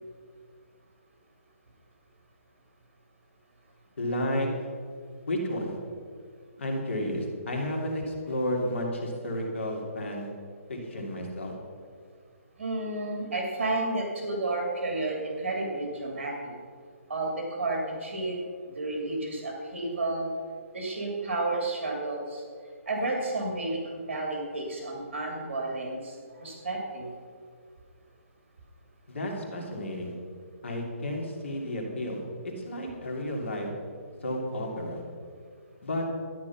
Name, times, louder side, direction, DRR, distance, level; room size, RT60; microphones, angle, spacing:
voice 1, 4.0-4.5 5.3-5.8 6.6-10.3 10.7-11.5 29.1-30.1 30.6-32.2 32.7-33.7 34.2-35.0 35.8-36.1, left 1 dB, 55° left, 0 dB, 2.8 m, -32 dB
voice 2, 12.6-16.3 17.1-20.3 20.7-22.4 22.9-27.1, right 2 dB, 55° right, 0 dB, 2.8 m, -31 dB
13.0 x 9.5 x 5.8 m, 2.1 s
hypercardioid pair, 175°, 8 cm